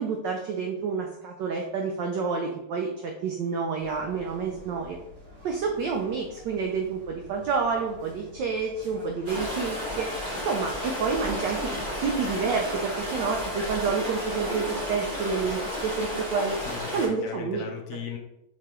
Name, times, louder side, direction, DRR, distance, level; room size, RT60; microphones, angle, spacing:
voice 1, 0.0-5.0 5.4-10.1 10.4-11.7 12.0-16.6 16.9-17.7, right 5 dB, 80° right, 2 dB, 1.0 m, -29 dB
sound 1, 3.8-13.6, equal, 55° right, 1.4 m, -48 dB
sound 2, 9.3-17.1, left 1 dB, 30° right, 1.1 m, -32 dB
voice 2, 16.6-18.2, left 7 dB, 85° left, 2 dB, 0.8 m, -37 dB
4.8 x 3.4 x 2.9 m, 0.86 s
omnidirectional pair, 2.4 m